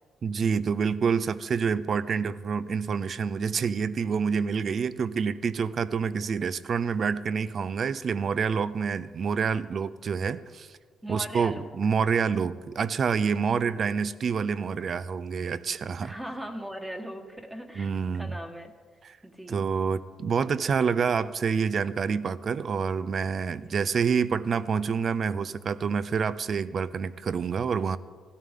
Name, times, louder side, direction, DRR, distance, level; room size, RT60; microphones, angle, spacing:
voice 1, 0.2-10.7 11.1-16.1 17.8-18.4 19.0-19.2 19.5-28.0, right 6 dB, 50° right, 16 dB, 0.5 m, -27 dB
voice 2, 11.0-11.7 13.6-13.8 16.0-18.7 19.2-19.7 23.5-23.9, equal, 10° right, 3 dB, 1.4 m, -39 dB
16.5 x 12.5 x 3.7 m, 1.5 s
cardioid pair, 90°, 0 cm